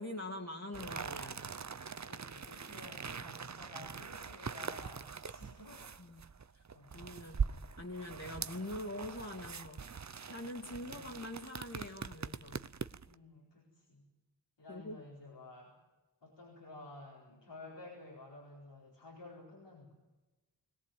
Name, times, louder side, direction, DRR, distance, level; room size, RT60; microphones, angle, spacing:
voice 1, 0.0-1.5 6.0-6.2 6.9-7.4 7.8-9.9 10.3-12.7 14.7-15.0, left 1 dB, 40° left, -1 dB, 2.6 m, -44 dB
sound 1, 0.7-13.1, right 6 dB, 40° right, 0.8 m, -42 dB
voice 2, 2.1-5.9 6.1-6.3 6.7-7.7 10.8-11.2 13.1-14.1 14.6-15.8 16.2-19.9, left 2 dB, 90° left, -4 dB, 4.6 m, -53 dB
21.5 x 17.5 x 9.3 m, 1.1 s
cardioid pair, 45°, 42 cm